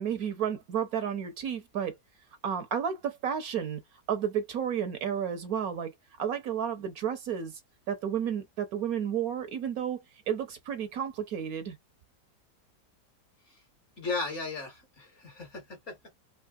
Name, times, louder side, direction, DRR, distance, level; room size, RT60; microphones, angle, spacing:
voice 1, 0.0-2.0 2.4-3.8 4.1-5.9 6.2-7.6 7.9-11.8, right 8 dB, 65° right, 1.1 m, -32 dB
voice 2, 14.0-16.0, left 3 dB, 45° left, 1.5 m, -36 dB
3.6 x 2.9 x 2.3 m
omnidirectional pair, 1.8 m